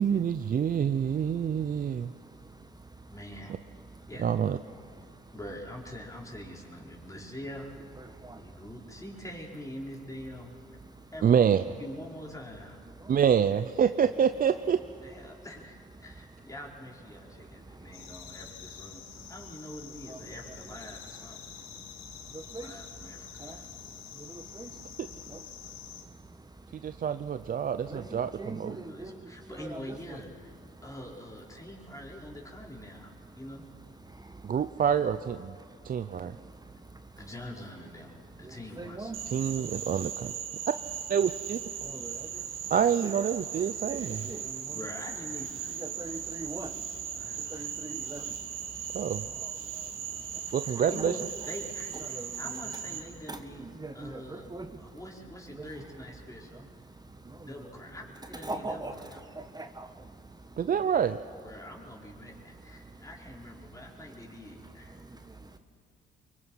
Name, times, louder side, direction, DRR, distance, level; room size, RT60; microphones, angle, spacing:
voice 1, 0.0-2.1 4.2-4.6 11.2-11.6 13.1-14.8 25.0-25.1 26.7-28.8 34.4-35.6 35.8-36.4 39.3-40.3 41.1-41.6 42.7-44.2 48.9-49.2 50.5-51.1 60.6-61.2, right 8 dB, 45° right, 0.6 m, -27 dB
voice 2, 3.1-3.6 4.1-4.3 5.3-7.8 8.4-10.5 11.1-11.3 11.8-12.8 15.0-19.0 19.3-21.4 22.6-23.6 28.7-30.5 30.8-33.7 34.4-35.2 37.2-39.1 44.7-45.7 47.1-47.7 50.9-53.6 53.9-54.5 54.8-56.6 57.4-59.2 61.4-65.0, left 1 dB, 15° left, 5.2 m, -45 dB
sound 1, 17.9-26.0, left 9 dB, 90° left, 1.5 m, -47 dB
voice 3, 27.9-28.7 29.0-29.1 29.6-30.0 38.8-39.2 41.9-42.1 43.0-43.1 43.9-44.0 44.2-44.6 45.8-46.7 47.5-48.2 51.0-51.1 52.0-52.3 53.3-54.7 58.4-58.9 59.5-59.9, right 2 dB, 20° right, 1.4 m, -39 dB
Frog, 39.1-53.0, right 8 dB, 80° right, 2.2 m, -38 dB
24.0 x 22.5 x 5.8 m
supercardioid pair, 65°, 20 cm